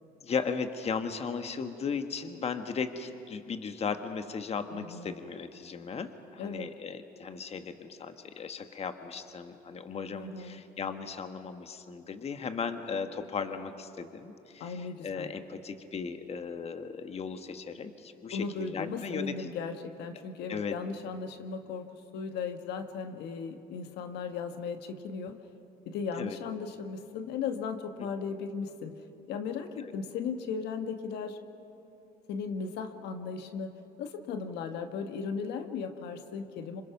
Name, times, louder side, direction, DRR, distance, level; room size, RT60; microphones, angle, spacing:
voice 1, 0.2-19.5 20.5-20.8 26.2-26.4 29.8-29.9, left 5 dB, 35° left, 8 dB, 1.4 m, -36 dB
voice 2, 4.7-5.2 6.4-6.7 10.1-10.6 14.6-15.3 18.3-25.4 25.8-28.9 29.3-31.4 32.3-33.7 34.0-36.8, left 5 dB, 80° left, 7 dB, 1.4 m, -36 dB
27.0 x 26.0 x 5.9 m, 3.0 s
cardioid pair, 110°, 17 cm